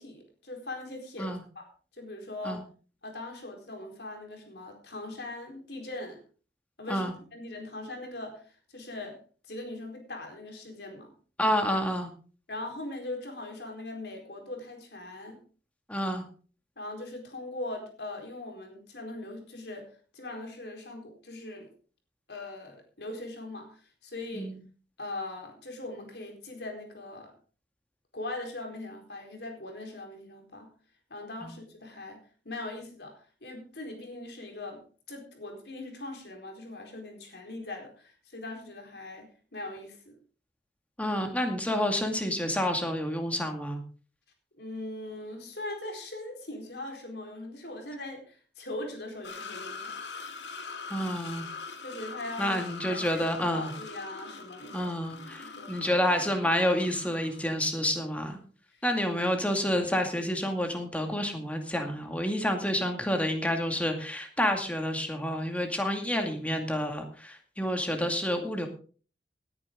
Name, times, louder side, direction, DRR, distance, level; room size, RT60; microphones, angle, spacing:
voice 1, 0.0-1.7 2.0-2.6 3.0-6.2 6.8-9.2 9.5-11.1 12.5-15.4 16.8-19.9 20.1-21.7 22.3-24.5 25.0-27.3 28.1-30.7 31.1-32.2 32.4-34.8 35.1-40.2 44.6-50.0 51.8-53.3 53.5-54.9 55.3-55.9 58.7-58.8, left 2 dB, 65° left, 2 dB, 4.3 m, -40 dB
voice 2, 11.4-12.1 15.9-16.3 24.3-24.6 31.4-31.5 41.0-43.8 50.9-51.5 52.4-53.7 54.7-58.4 58.8-68.7, equal, 10° left, 4 dB, 2.3 m, -29 dB
sound 1, 49.2-57.9 58.3-58.4 60.2-60.3, left 4 dB, 85° left, 1.9 m, -42 dB
19.5 x 9.9 x 3.8 m, 0.39 s
head